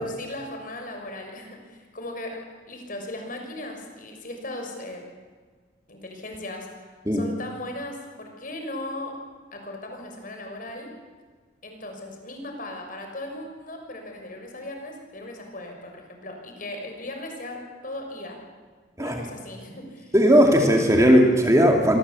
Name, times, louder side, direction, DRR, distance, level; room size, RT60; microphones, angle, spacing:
voice 1, 0.0-2.4 2.7-5.0 5.9-9.2 9.5-10.9 11.6-18.4 19.0-20.2, left 1 dB, 45° left, 3 dB, 6.4 m, -37 dB
voice 2, 20.1-22.0, equal, 15° right, 2 dB, 2.7 m, -17 dB
26.5 x 25.0 x 8.5 m, 1.5 s
head